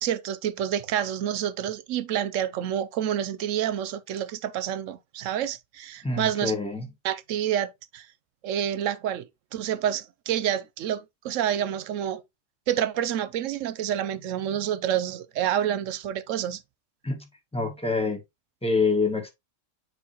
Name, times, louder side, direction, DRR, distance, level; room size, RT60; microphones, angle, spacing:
voice 1, 0.0-6.5 7.0-8.1 8.4-12.2 12.7-16.6, right 10 dB, 80° right, 1.0 m, -28 dB
voice 2, 6.0-6.9 17.0-17.2 17.5-18.2 18.6-19.3, left 3 dB, 5° left, 1.4 m, -26 dB
7.1 x 4.8 x 2.9 m
omnidirectional pair, 1.3 m